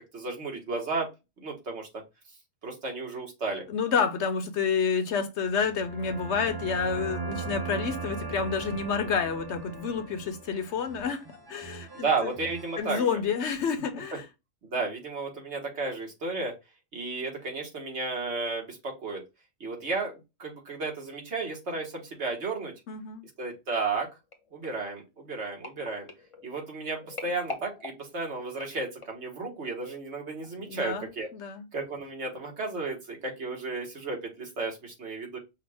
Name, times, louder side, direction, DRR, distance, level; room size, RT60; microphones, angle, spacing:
voice 1, 0.1-1.1 1.4-1.9 2.6-3.6 11.9-13.2 14.6-16.5 16.9-19.2 19.6-22.7 23.4-24.1 24.5-26.1 26.4-31.3 31.7-35.4, right 3 dB, 60° right, 1.7 m, -33 dB
voice 2, 3.7-12.3 12.8-14.3 22.9-23.3 30.6-31.1 31.3-31.7, left 6 dB, 65° left, 1.0 m, -29 dB
sound 1, 5.5-13.1, right 5 dB, 25° right, 0.5 m, -39 dB
sound 2, 24.3-29.3 29.9-30.2 30.4-30.5, left 2 dB, 30° left, 0.8 m, -44 dB
5.7 x 2.2 x 3.4 m
omnidirectional pair, 1.3 m